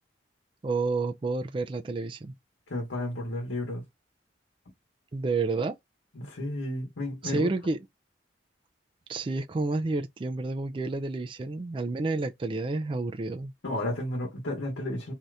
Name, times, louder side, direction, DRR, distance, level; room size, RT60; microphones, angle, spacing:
voice 1, 0.6-2.3 5.1-5.7 7.2-7.8 9.1-13.5, right 3 dB, 25° right, 0.3 m, -30 dB
voice 2, 2.7-3.8 6.1-7.5 13.6-15.1, left 1 dB, 80° left, 1.0 m, -32 dB
2.7 x 2.4 x 3.2 m
head